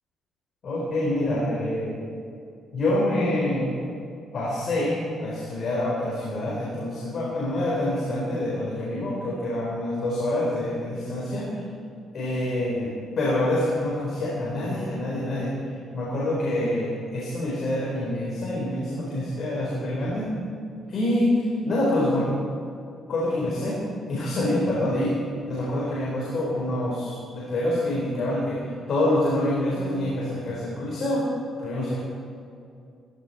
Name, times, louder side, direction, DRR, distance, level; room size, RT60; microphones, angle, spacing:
voice 1, 0.6-2.0 2.7-3.8 4.3-11.6 12.1-20.3 20.9-22.3 23.1-23.8 24.1-25.1 25.5-31.3 31.6-32.0, left 1 dB, 55° left, -5 dB, 4.4 m, -26 dB
17.5 x 15.0 x 4.4 m, 2.5 s
cardioid pair, 90°, 0 cm